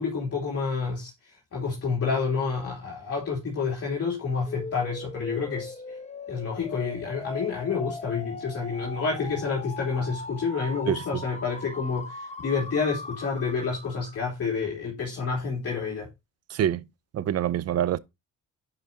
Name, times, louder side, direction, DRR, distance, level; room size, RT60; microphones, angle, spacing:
voice 1, 0.0-6.0 6.3-16.1, left 5 dB, 50° left, 3.0 m, -29 dB
sound 1, 4.5-14.3, left 3 dB, 20° left, 1.2 m, -39 dB
voice 2, 16.5-16.8 17.1-18.0, right 10 dB, 55° right, 0.6 m, -25 dB
10.5 x 5.0 x 2.8 m
cardioid pair, 90°, 30 cm